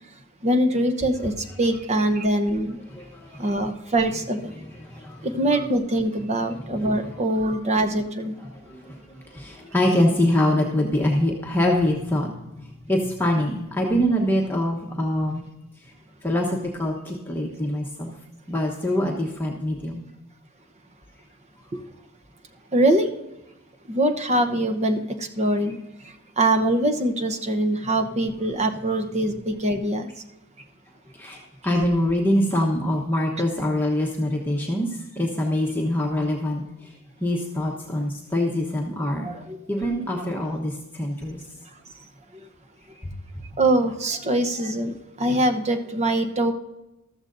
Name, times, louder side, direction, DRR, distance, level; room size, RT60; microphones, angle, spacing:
voice 1, 0.4-2.8 3.4-4.5 5.2-8.4 21.7-21.8 22.7-23.1 23.9-25.8 26.4-30.1 39.2-39.6 43.6-46.5, right 1 dB, 30° right, 6 dB, 0.9 m, -23 dB
voice 2, 2.9-3.6 4.8-5.3 6.6-7.1 8.5-15.5 15.8-15.9 16.2-18.1 18.5-20.0 31.1-36.9 37.2-39.3 39.7-41.4 43.0-43.2, left 1 dB, 10° left, -1 dB, 1.1 m, -25 dB
14.0 x 13.5 x 2.7 m, 0.96 s
head